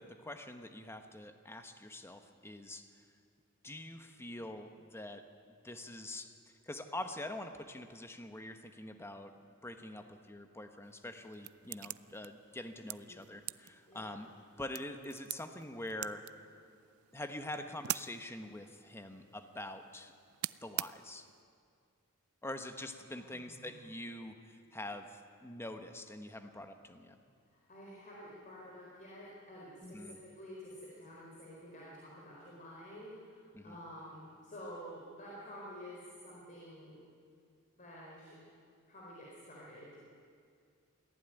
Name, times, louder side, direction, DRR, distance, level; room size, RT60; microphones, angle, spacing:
voice 1, 0.0-2.9 3.6-5.2 5.6-6.4 6.6-9.3 9.6-14.3 14.6-16.3 17.1-20.1 20.6-21.3 22.4-27.1 29.8-30.2 33.5-33.8, left 1 dB, 10° left, 7 dB, 1.2 m, -45 dB
sound 1, 10.8-21.4, right 15 dB, 75° right, 0.4 m, -46 dB
voice 2, 13.9-14.2 23.1-23.9 27.5-37.0 37.7-38.4 38.9-40.1, equal, 35° left, -4 dB, 4.2 m, -50 dB
22.5 x 15.5 x 9.2 m, 2.3 s
head